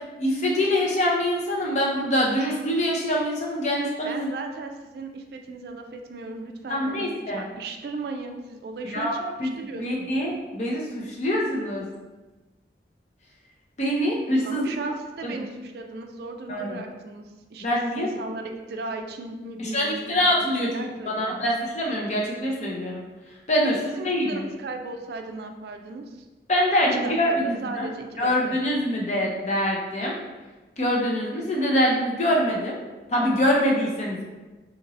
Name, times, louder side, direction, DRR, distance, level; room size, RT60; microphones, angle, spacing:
voice 1, 0.2-4.3 6.7-7.4 8.9-9.5 9.8-11.9 13.8-14.7 15.2-15.3 16.5-16.8 17.6-18.1 19.6-23.0 23.5-23.8 24.0-24.5 26.5-27.9 28.2-30.2 30.8-32.8 33.1-34.2, equal, 40° left, -2 dB, 0.6 m, -24 dB
voice 2, 4.0-10.1 14.4-17.2 17.5-20.2 20.6-21.5 24.0-26.2 26.9-28.3 28.6-28.7, right 3 dB, 60° right, 4 dB, 0.3 m, -36 dB
2.8 x 2.6 x 4.0 m, 1.2 s
head